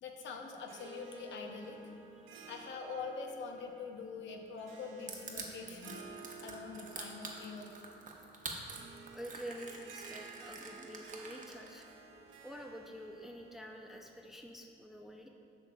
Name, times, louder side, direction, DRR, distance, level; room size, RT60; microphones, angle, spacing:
voice 1, 0.0-1.8 2.4-6.0 6.4-7.7, left 4 dB, 70° left, 3 dB, 0.6 m, -44 dB
Harp, 0.6-14.3, right 5 dB, 80° right, 0.6 m, -54 dB
voice 2, 2.1-2.5 6.2-6.4 9.1-11.9 12.4-15.3, equal, ahead, 2 dB, 0.4 m, -48 dB
Crushing, 5.1-11.8, right 4 dB, 40° right, 0.8 m, -46 dB
7.5 x 5.8 x 2.3 m, 2.5 s
cardioid pair, 90°, 20 cm